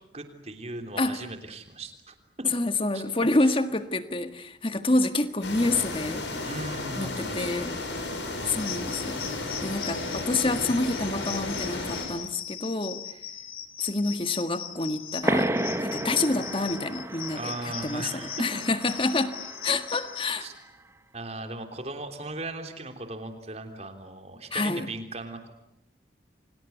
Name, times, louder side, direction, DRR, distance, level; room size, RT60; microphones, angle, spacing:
voice 1, 0.1-2.5 2.9-3.0 3.4-3.5 6.4-8.7 17.3-18.4 20.4-20.5 21.1-25.5, right 2 dB, 35° right, 5 dB, 3.4 m, -38 dB
voice 2, 2.5-6.2 6.9-7.7 8.4-9.2 9.6-13.0 13.8-15.5 15.8-18.1 18.4-20.5 24.5-24.9, left 2 dB, 30° left, 9 dB, 1.6 m, -27 dB
sound 1, 5.4-12.1, left 2 dB, 85° left, 6.9 m, -33 dB
sound 2, 8.6-20.3, left 9 dB, 55° left, 2.4 m, -39 dB
sound 3, 15.2-20.5, right 1 dB, 15° right, 1.1 m, -32 dB
29.5 x 25.0 x 8.1 m, 0.79 s
head